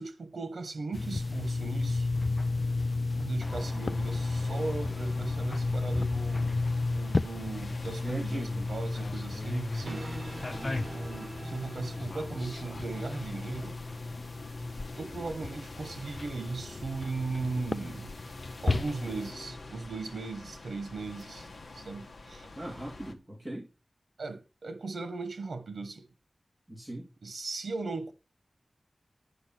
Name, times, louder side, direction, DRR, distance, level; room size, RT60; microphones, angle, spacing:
voice 1, 0.0-2.1 3.2-6.6 6.9-10.1 10.9-13.8 14.9-18.1 18.6-21.5 21.7-22.5 24.2-26.1 27.2-28.1, right 3 dB, 80° right, 1.2 m, -37 dB
sound 1, 0.9-19.3, left 3 dB, 50° left, 0.4 m, -33 dB
sound 2, 3.4-23.1, left 2 dB, 75° left, 1.4 m, -47 dB
voice 2, 8.0-8.7 10.6-10.9 22.6-23.7 26.7-27.0, right 1 dB, 10° right, 2.8 m, -39 dB
sound 3, 9.6-16.7, right 2 dB, 40° right, 0.8 m, -47 dB
10.5 x 5.3 x 6.0 m
wide cardioid pair, 80°, 0 cm